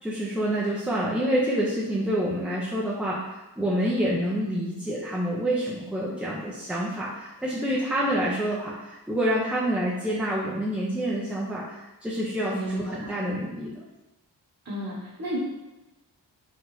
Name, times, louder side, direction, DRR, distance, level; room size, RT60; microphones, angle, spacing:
voice 1, 0.0-13.8, equal, 5° right, -6 dB, 0.5 m, -27 dB
voice 2, 12.5-13.1 14.6-15.4, right 1 dB, 40° right, -10 dB, 1.1 m, -32 dB
3.1 x 2.4 x 3.0 m, 1.0 s
cardioid pair, 50°, 43 cm